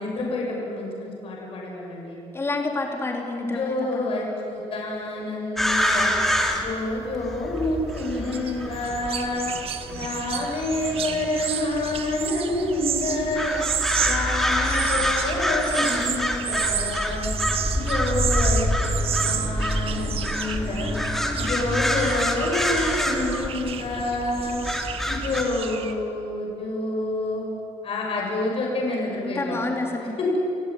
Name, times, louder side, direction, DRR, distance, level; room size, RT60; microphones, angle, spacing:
voice 1, 0.0-2.2 3.4-6.2 6.5-9.5 9.9-13.6 14.0-17.3 17.7-21.0 21.4-24.6 25.1-27.4 27.8-29.7 30.2-30.4, left 2 dB, 50° left, -2 dB, 7.2 m, -28 dB
voice 2, 2.3-4.1 29.2-30.1, left 2 dB, 20° left, 1 dB, 4.1 m, -28 dB
sound 1, 5.6-25.4, equal, ahead, 2.8 m, -27 dB
sound 2, 7.6-25.9, right 8 dB, 50° right, 1.7 m, -32 dB
29.5 x 16.0 x 9.8 m, 2.9 s
cardioid pair, 135°, 12 cm